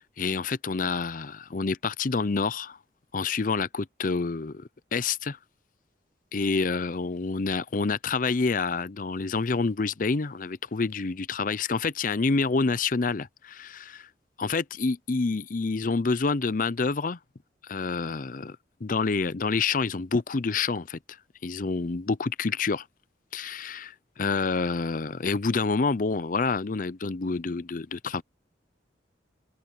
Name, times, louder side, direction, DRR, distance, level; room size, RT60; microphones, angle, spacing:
voice 1, 0.0-2.8 3.1-5.4 6.3-14.1 14.4-17.2 17.7-18.6 18.8-21.0 21.4-22.8 23.3-28.2, left 4 dB, 50° left, 0.6 m, -28 dB
head